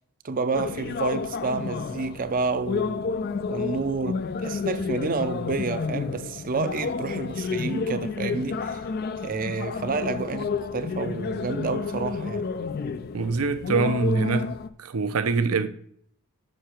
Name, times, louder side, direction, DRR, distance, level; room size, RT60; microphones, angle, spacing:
voice 1, 0.2-3.1 3.5-8.8 9.2-12.5, right 4 dB, 40° right, 0.5 m, -29 dB
sound 1, 0.5-14.7, left 5 dB, 45° left, 0.4 m, -30 dB
voice 2, 13.1-14.5 14.8-15.7, right 4 dB, 80° right, 0.6 m, -24 dB
6.5 x 5.5 x 4.4 m
head